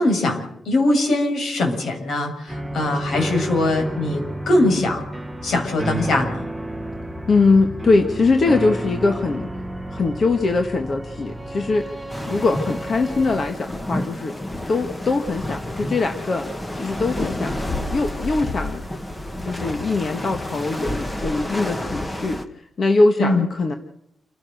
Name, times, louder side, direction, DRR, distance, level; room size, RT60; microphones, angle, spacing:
voice 1, 0.0-5.0 5.4-6.5 23.2-23.5, left 2 dB, 75° left, 3 dB, 6.6 m, -21 dB
sound 1, 2.5-13.5, right 1 dB, 5° right, 1.2 m, -31 dB
voice 2, 7.3-9.5 9.9-11.9 12.3-14.3 14.7-16.5 16.7-17.5 17.9-18.8 19.4-22.4 22.8-23.7, left 3 dB, 40° left, 5 dB, 1.6 m, -21 dB
sound 2, 12.1-22.4, left 1 dB, 15° left, 1.5 m, -30 dB
29.0 x 16.0 x 6.6 m, 0.77 s
wide cardioid pair, 165°, 0 cm